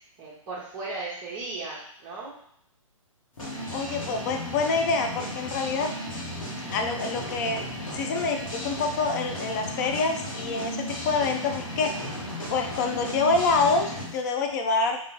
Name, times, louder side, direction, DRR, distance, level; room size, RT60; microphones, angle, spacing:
voice 1, 0.2-2.3, right 3 dB, 20° right, -8 dB, 0.8 m, -36 dB
sound 1, 3.4-14.1, equal, 70° left, 1.4 m, -35 dB
voice 2, 3.7-5.9 6.7-7.6 7.9-11.9 12.5-15.0, left 4 dB, 30° left, 4 dB, 0.5 m, -26 dB
3.7 x 2.7 x 3.0 m, 0.70 s
figure-of-eight pair, 135°, 18 cm